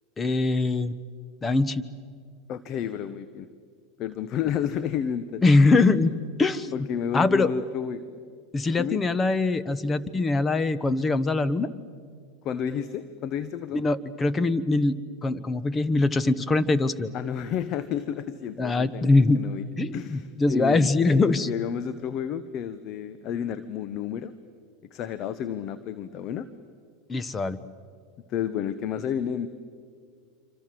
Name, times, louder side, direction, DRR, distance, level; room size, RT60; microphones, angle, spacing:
voice 1, 0.2-0.9 1.4-1.8 5.4-6.1 6.4-6.7 7.1-7.5 8.5-11.7 13.7-17.1 18.6-19.4 19.8-21.5 27.1-27.6, left 3 dB, 20° left, 15 dB, 1.2 m, -22 dB
voice 2, 2.5-3.5 4.0-5.4 5.7-5.9 6.7-8.0 8.8-9.0 12.4-13.8 17.1-20.9 21.3-24.3 24.9-26.5 28.3-29.5, left 8 dB, 45° left, 13 dB, 1.1 m, -31 dB
27.0 x 25.5 x 7.8 m, 2.1 s
hypercardioid pair, 105°, 0 cm